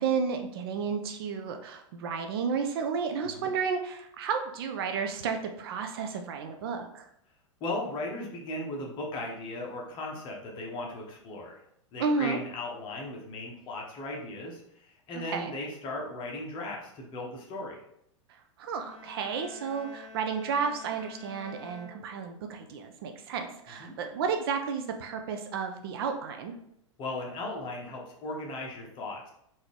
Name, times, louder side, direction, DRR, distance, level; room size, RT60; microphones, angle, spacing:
voice 1, 0.0-7.1 12.0-12.4 15.3-15.5 18.6-26.5, right 5 dB, 50° right, 5 dB, 0.4 m, -32 dB
voice 2, 7.6-11.6 11.9-17.8 23.8-23.9 27.0-29.3, left 2 dB, 30° left, -1 dB, 0.9 m, -37 dB
sound 1, 18.8-22.6, left 3 dB, 80° left, 0.7 m, -49 dB
3.8 x 2.6 x 3.2 m, 0.74 s
figure-of-eight pair, 95°, 17 cm